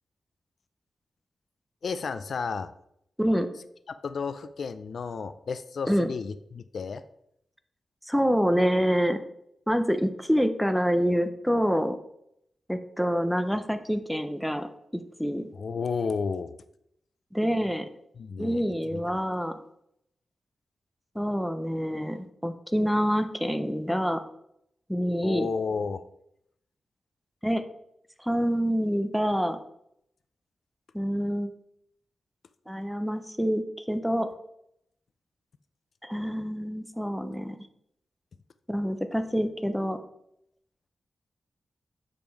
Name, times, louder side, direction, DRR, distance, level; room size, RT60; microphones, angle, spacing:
voice 1, 1.8-2.7 4.0-7.0 15.6-16.5 18.2-18.6 18.9-19.2 25.2-26.1, left 5 dB, 60° left, 12 dB, 0.4 m, -32 dB
voice 2, 8.1-9.2 9.7-12.0 12.7-14.7 14.9-15.5 17.3-17.9 18.4-19.5 21.2-24.2 24.9-25.5 27.4-27.6 28.2-29.6 30.9-31.5 32.7-34.3 36.0-37.6 38.7-40.0, equal, ahead, 8 dB, 0.5 m, -26 dB
7.2 x 5.2 x 4.5 m, 0.75 s
wide cardioid pair, 165°, 0 cm